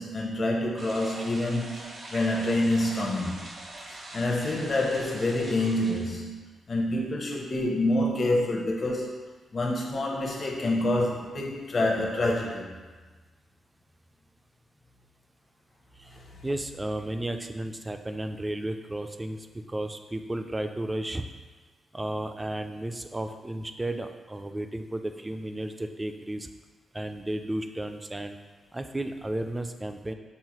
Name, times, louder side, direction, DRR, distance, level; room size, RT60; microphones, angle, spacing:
voice 1, 0.0-3.5 4.1-6.4 6.7-9.2 9.5-12.7 16.1-16.2, left 1 dB, 50° left, -1 dB, 0.7 m, -27 dB
sound 1, 0.8-6.2, right 2 dB, 65° right, 0.7 m, -43 dB
voice 2, 16.4-21.2 21.9-26.5 26.9-28.4 28.7-30.1, right 1 dB, 20° right, 7 dB, 0.3 m, -33 dB
5.5 x 2.1 x 3.0 m, 1.3 s
supercardioid pair, 55°, 0 cm